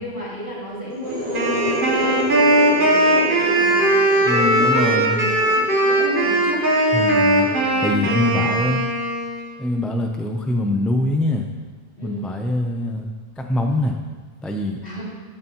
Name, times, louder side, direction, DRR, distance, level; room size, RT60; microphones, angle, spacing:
voice 1, 0.0-6.7 7.4-8.6 12.0-12.3 14.8-15.0, equal, 65° left, -8 dB, 3.4 m, -32 dB
sound 1, 0.9-8.4, right 1 dB, 35° right, 1.5 m, -30 dB
Wind instrument woodwind instrument, 1.3-9.5, right 1 dB, 55° right, 1.4 m, -19 dB
voice 2, 4.2-5.3 6.9-7.5 7.8-8.9 9.6-11.4 12.0-14.0 14.4-14.8, left 1 dB, ahead, 3 dB, 0.5 m, -23 dB
13.5 x 7.5 x 3.0 m, 1.4 s
omnidirectional pair, 1.1 m